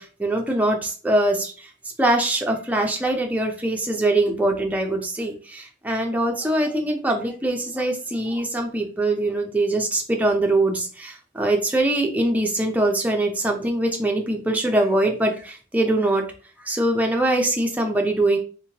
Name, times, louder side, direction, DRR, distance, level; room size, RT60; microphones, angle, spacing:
voice 1, 0.0-1.7 2.0-16.2 16.6-18.4, right 1 dB, 5° right, 1 dB, 0.5 m, -23 dB
3.5 x 3.0 x 2.8 m, 0.38 s
head